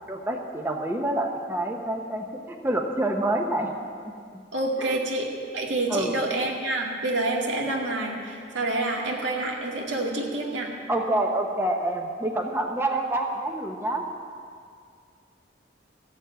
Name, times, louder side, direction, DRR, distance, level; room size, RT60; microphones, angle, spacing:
voice 1, 0.1-3.7 4.8-5.0 5.9-6.2 10.9-14.1, right 1 dB, 15° right, 2 dB, 0.9 m, -27 dB
voice 2, 4.5-10.7, right 2 dB, 90° right, -1 dB, 2.2 m, -28 dB
14.5 x 7.2 x 9.1 m, 2.2 s
head